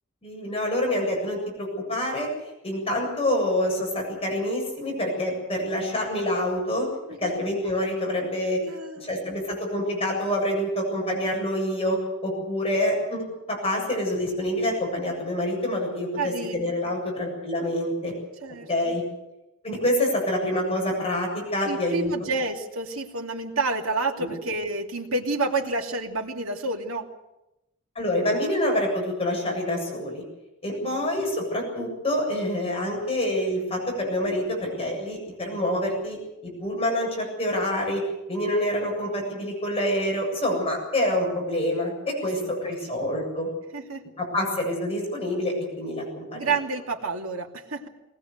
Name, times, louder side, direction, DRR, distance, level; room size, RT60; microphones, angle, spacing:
voice 1, 0.2-2.3 2.6-6.9 7.2-8.6 9.0-18.1 18.7-19.0 19.6-22.3 24.2-24.3 28.0-30.2 30.6-36.2 36.4-38.0 38.3-43.5 44.2-46.5, left 1 dB, 30° left, -1 dB, 7.6 m, -27 dB
voice 2, 8.6-9.2 16.2-16.5 18.4-18.9 21.6-27.1 30.8-31.0 42.4-42.6 43.7-44.1 46.3-47.9, right 3 dB, 75° right, 1 dB, 2.8 m, -29 dB
21.0 x 19.5 x 8.0 m, 0.92 s
head